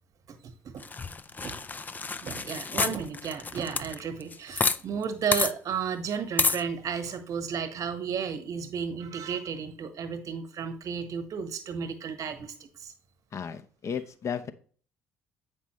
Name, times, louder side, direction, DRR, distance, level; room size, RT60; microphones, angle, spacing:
voice 1, 0.3-0.8 1.4-1.6 2.2-12.9, right 7 dB, 55° right, 8 dB, 1.4 m, -33 dB
sound 1, 0.8-4.8 5.0-5.1 5.3-5.5 6.4-6.6, left 4 dB, 25° left, 0.5 m, -29 dB
voice 2, 13.3-14.5, left 7 dB, 45° left, 11 dB, 0.8 m, -34 dB
8.2 x 5.4 x 3.1 m, 0.43 s
hypercardioid pair, 55°, 7 cm